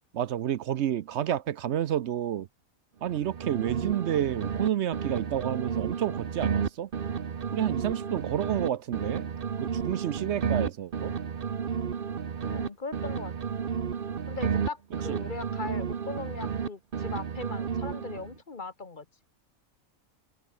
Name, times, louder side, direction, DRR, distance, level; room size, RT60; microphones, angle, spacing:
voice 1, 0.1-2.5 3.0-6.9 7.5-9.3 9.6-11.1 15.1-15.2, right 10 dB, 60° right, 0.8 m, -30 dB
sound 1, 3.0-4.7 4.9-8.7 8.9-12.7 12.9-16.7 16.9-18.3, right 7 dB, 45° right, 1.1 m, -32 dB
voice 2, 12.4-13.3 14.3-19.0, left 4 dB, 35° left, 1.5 m, -39 dB
omnidirectional pair, 1.4 m